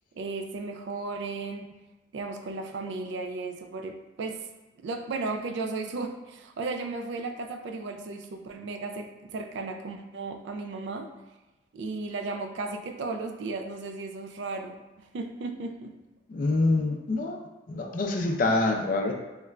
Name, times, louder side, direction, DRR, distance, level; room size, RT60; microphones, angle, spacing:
voice 1, 0.2-1.7 2.1-4.4 4.8-11.1 11.7-15.9, right 3 dB, 70° right, 5 dB, 0.3 m, -35 dB
voice 2, 16.3-17.4 17.7-19.1, left 2 dB, 45° left, 2 dB, 0.4 m, -26 dB
3.1 x 2.4 x 3.2 m, 1.1 s
head